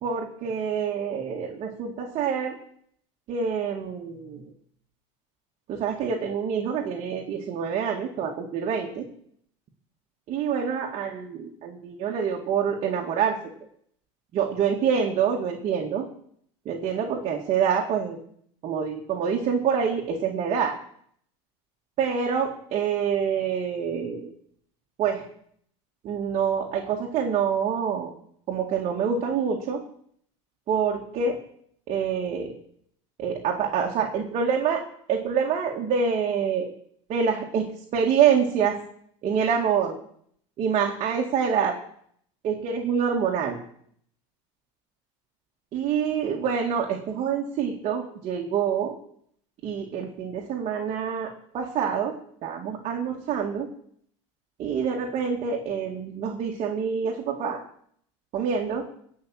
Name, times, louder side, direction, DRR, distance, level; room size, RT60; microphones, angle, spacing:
voice 1, 0.0-2.6 3.3-4.4 5.7-9.1 10.3-13.4 14.3-16.1 16.7-18.2 18.6-20.8 22.0-24.3 25.0-25.2 26.0-28.1 28.5-29.8 30.7-31.4 31.9-32.5 33.2-34.8 35.1-36.7 37.1-38.8 39.2-40.0 40.6-41.8 42.4-43.6 45.7-48.9 49.6-52.1 52.4-53.7 54.6-57.6 58.3-58.9, right 7 dB, 45° right, 0 dB, 2.2 m, -26 dB
17.0 x 5.8 x 8.6 m, 0.65 s
supercardioid pair, 120°, 15 cm